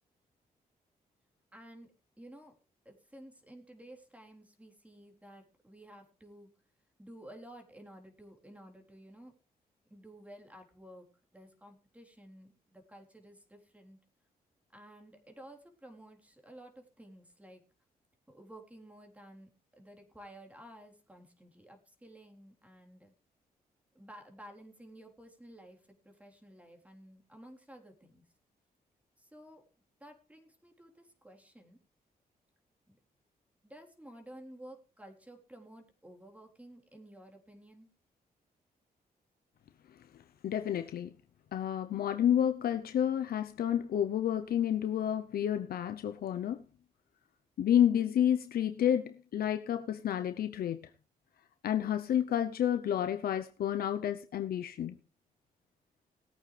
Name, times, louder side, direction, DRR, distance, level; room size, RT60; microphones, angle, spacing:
voice 1, 1.5-1.9 2.2-2.5 2.9-6.5 7.0-9.3 9.9-11.1 11.3-14.0 14.7-17.6 18.3-19.5 19.8-23.1 23.9-28.2 29.2-29.6 30.0-31.8 32.9-33.0 33.6-37.9, right 1 dB, 10° right, 3.8 m, -53 dB
voice 2, 40.4-41.1 41.5-46.6 47.6-50.9 51.6-55.0, left 10 dB, 75° left, 0.8 m, -30 dB
19.5 x 8.8 x 3.3 m
cardioid pair, 75°, 16 cm